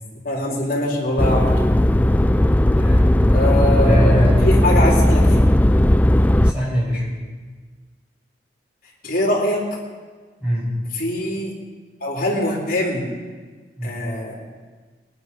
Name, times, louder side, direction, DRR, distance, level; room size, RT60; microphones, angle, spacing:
voice 1, 0.2-1.5 3.3-5.5 9.0-9.6 11.0-11.5 12.0-13.1 13.8-14.5, left 1 dB, 55° left, -4 dB, 3.7 m, -22 dB
sound 1, 1.2-6.5, left 1 dB, 10° left, 0.3 m, -16 dB
voice 2, 2.4-3.4 3.8-4.4 6.4-7.1 10.4-10.7 13.8-14.0, equal, 5° right, -6 dB, 6.3 m, -24 dB
20.0 x 10.0 x 5.5 m, 1.4 s
head